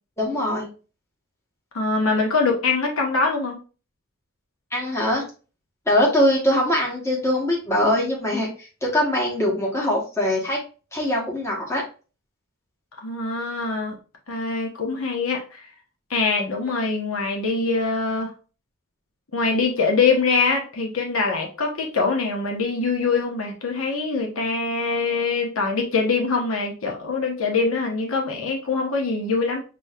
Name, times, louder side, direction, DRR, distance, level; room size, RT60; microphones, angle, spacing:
voice 1, 0.2-0.7 4.7-5.2 5.9-10.6 10.9-11.8, left 1 dB, 15° left, -3 dB, 1.3 m, -22 dB
voice 2, 1.7-3.6 13.0-14.0 14.3-15.6 16.1-18.3 19.3-29.6, left 4 dB, 90° left, 1 dB, 1.2 m, -23 dB
6.1 x 3.1 x 2.4 m, 0.35 s
head